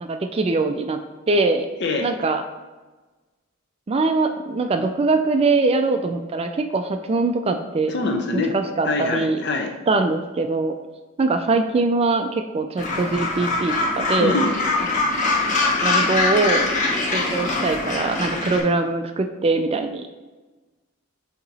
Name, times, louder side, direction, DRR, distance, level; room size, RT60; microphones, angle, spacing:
voice 1, 0.0-1.0 1.3-1.7 2.0-2.4 3.9-7.9 8.3-9.4 9.9-10.7 11.2-14.4 15.0-15.3 15.8-16.6 17.1-20.1, right 3 dB, 30° right, 7 dB, 0.3 m, -22 dB
voice 2, 7.9-8.5 8.8-9.7 14.2-14.5, left 2 dB, 55° left, 3 dB, 0.8 m, -24 dB
Gull seagull, 12.8-18.6, left 3 dB, 35° left, 1.1 m, -23 dB
8.2 x 2.9 x 4.1 m, 1.2 s
head